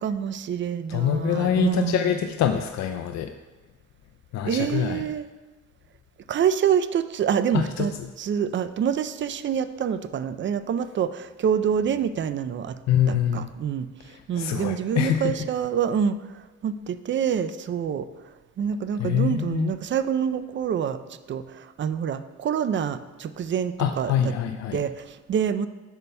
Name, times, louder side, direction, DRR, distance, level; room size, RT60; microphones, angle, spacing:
voice 1, 0.0-2.2 4.4-5.3 6.3-12.8 13.1-16.2 16.6-18.1 18.6-21.0 21.3-24.3 24.7-25.7, right 8 dB, 40° right, 12 dB, 0.4 m, -26 dB
voice 2, 0.9-3.3 4.3-5.0 7.5-7.9 12.9-13.5 14.3-15.3 19.0-19.7 23.8-24.8, left 9 dB, 60° left, 5 dB, 0.5 m, -25 dB
10.5 x 6.7 x 2.2 m, 1.2 s
cardioid pair, 90°, 30 cm